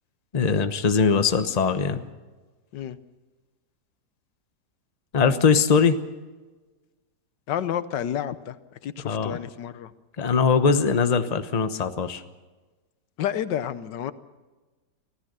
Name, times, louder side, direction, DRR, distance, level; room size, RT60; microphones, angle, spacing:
voice 1, 0.3-2.0 5.1-6.0 9.0-9.4 10.2-12.2, left 5 dB, 30° left, 9 dB, 0.9 m, -21 dB
voice 2, 7.5-8.6 8.8-9.9 13.2-14.1, left 10 dB, 85° left, 14 dB, 1.5 m, -30 dB
25.0 x 16.5 x 6.8 m, 1.3 s
omnidirectional pair, 1.8 m